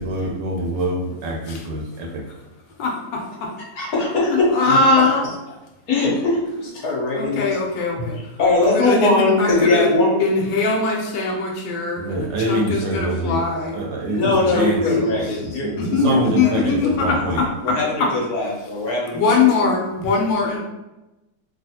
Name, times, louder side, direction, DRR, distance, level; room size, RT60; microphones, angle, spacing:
voice 1, 0.0-2.2 12.0-13.4 13.7-14.8 15.1-17.4, right 1 dB, 75° right, -1 dB, 1.2 m, -25 dB
voice 2, 2.8-3.5 4.5-5.2 7.1-8.2 8.6-9.9 10.2-13.8 14.2-14.3 14.5-15.1 15.8-18.1 19.1-20.6, left 3 dB, 80° left, 0 dB, 1.3 m, -21 dB
voice 3, 3.7-4.8 5.9-7.6 8.0-10.1 10.4-10.5 14.1-15.7 16.0-17.2 17.6-19.3, left 2 dB, 60° left, -4 dB, 1.2 m, -21 dB
3.3 x 2.4 x 2.7 m, 1.0 s
omnidirectional pair, 2.0 m